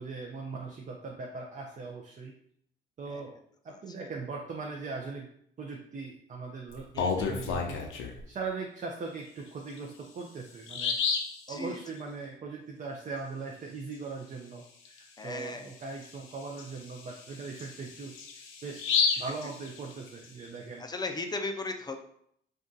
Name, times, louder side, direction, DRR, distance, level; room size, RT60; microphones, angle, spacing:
voice 1, 0.0-2.3 3.0-3.3 3.6-5.3 5.6-7.8 8.3-11.0 11.5-20.9, right 4 dB, 40° right, 0 dB, 0.5 m, -40 dB
Bird vocalization bird call bird song, 6.7-8.2 9.7-9.8 10.2-10.3 10.7-11.4 14.9-15.0 15.4-15.5 16.0-20.3, left 5 dB, 85° left, 0.6 m, -31 dB
voice 2, 6.9-7.4 11.5-11.8 15.2-15.8 20.8-22.0, left 3 dB, 20° left, 5 dB, 0.4 m, -37 dB
2.6 x 2.4 x 3.7 m, 0.67 s
cardioid pair, 90°, 20 cm